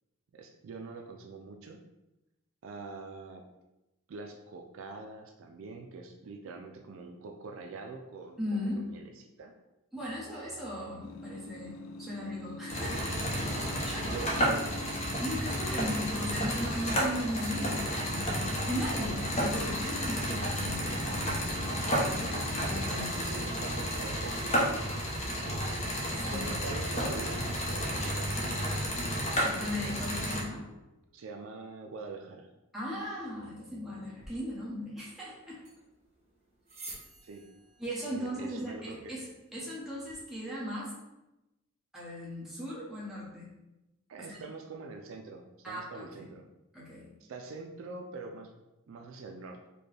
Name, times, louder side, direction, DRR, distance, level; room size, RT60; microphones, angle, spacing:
voice 1, 0.3-1.8 2.6-3.5 4.1-9.5 13.2-14.7 22.9-25.1 26.0-28.5 31.1-32.5 37.2-37.5 38.1-39.2 44.1-46.5 47.2-48.5 48.9-49.7, right 3 dB, 65° right, 4 dB, 0.4 m, -45 dB
voice 2, 8.4-8.9 9.9-13.3 13.5-14.2 15.2-21.4 22.6-23.3 26.1-26.4 29.4-30.7 32.7-35.6 37.8-39.2 39.5-40.9 41.9-43.5 44.2-44.4 45.6-46.0 46.7-47.1, equal, ahead, -8 dB, 1.0 m, -37 dB
sound 1, 11.0-23.4, left 2 dB, 80° left, 0.4 m, -45 dB
sound 2, 12.7-30.4, equal, 30° left, 0.7 m, -32 dB
sound 3, 34.2-40.2, right 2 dB, 30° right, 1.0 m, -53 dB
4.2 x 2.2 x 3.3 m, 0.96 s
head